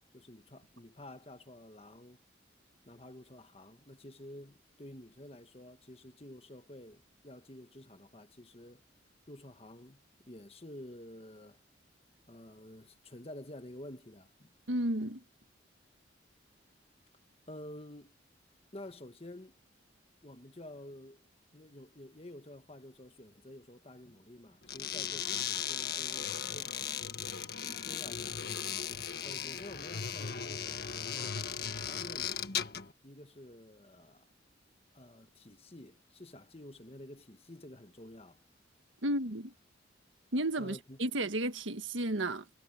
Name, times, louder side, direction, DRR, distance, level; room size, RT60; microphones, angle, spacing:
voice 1, 0.0-2.2 2.9-8.8 9.3-11.6 12.3-14.5 17.5-18.1 18.7-19.6 20.2-21.2 21.5-27.0 27.6-28.4 29.2-32.5 33.0-34.3 34.9-38.4 40.6-41.0, left 1 dB, 30° left, 1.5 m, -50 dB
voice 2, 14.7-15.2 39.0-39.5 40.3-42.5, right 1 dB, 75° right, 1.6 m, -33 dB
sound 1, 24.6-32.9, left 8 dB, 50° left, 1.7 m, -37 dB
head